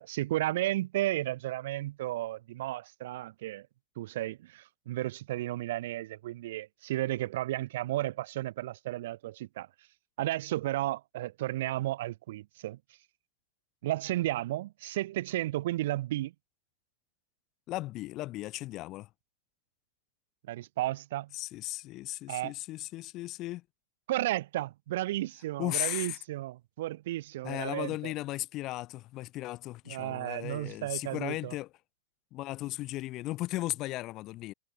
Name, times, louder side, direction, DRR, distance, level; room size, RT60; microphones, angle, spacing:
voice 1, 0.0-3.7 4.0-9.7 10.2-12.8 13.8-16.3 20.5-21.3 22.3-22.5 24.1-28.1 29.9-31.5, right 15 dB, 65° right, 0.4 m, -33 dB
voice 2, 17.7-19.1 21.3-23.6 25.6-26.2 27.4-31.7 32.3-34.5, left 17 dB, 35° left, 0.5 m, -36 dB
hypercardioid pair, 140°, 0 cm